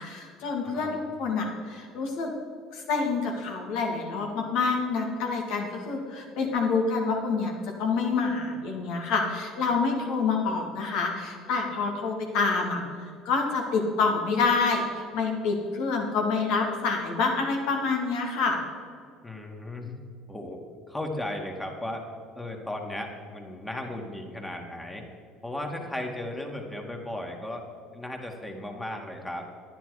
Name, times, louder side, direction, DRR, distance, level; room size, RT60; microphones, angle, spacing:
voice 1, 0.0-2.3 2.7-7.5 7.8-12.8 13.3-18.6, left 4 dB, 70° left, 2 dB, 2.2 m, -27 dB
voice 2, 0.6-1.0 19.2-19.9 20.3-20.6 20.9-22.0 22.3-25.0 25.4-27.6 27.9-29.5, left 1 dB, 10° left, 2 dB, 2.2 m, -35 dB
10.5 x 10.0 x 5.0 m, 2.3 s
hypercardioid pair, 75°, 0 cm